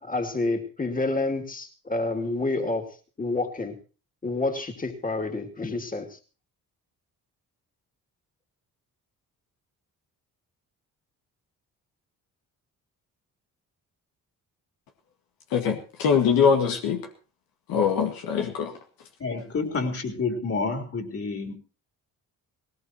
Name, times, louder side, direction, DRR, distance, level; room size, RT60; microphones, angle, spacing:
voice 1, 0.0-2.8 3.2-3.7 4.2-6.2, left 2 dB, 25° left, 5 dB, 2.8 m, -28 dB
voice 2, 15.5-17.0 17.7-18.7, left 6 dB, 90° left, 5 dB, 2.0 m, -23 dB
voice 3, 19.2-21.5, left 4 dB, 40° left, 6 dB, 4.0 m, -29 dB
18.5 x 18.5 x 3.0 m, 0.36 s
cardioid pair, 85°, 34 cm